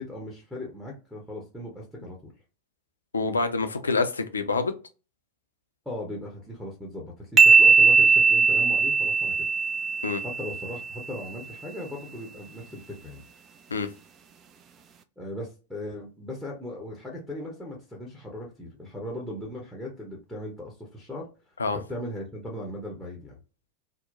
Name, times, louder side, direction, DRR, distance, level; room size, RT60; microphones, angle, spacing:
voice 1, 0.0-2.3 5.9-9.3 10.2-13.2 15.2-21.3 21.7-23.4, left 1 dB, 5° right, 0.8 m, -38 dB
voice 2, 3.1-4.7 10.0-10.2 13.7-13.9 21.6-21.8, left 4 dB, 75° left, 0.4 m, -26 dB
sound 1, 7.4-10.9, right 4 dB, 30° right, 0.3 m, -19 dB
2.8 x 2.1 x 2.4 m
figure-of-eight pair, 90°, 0 cm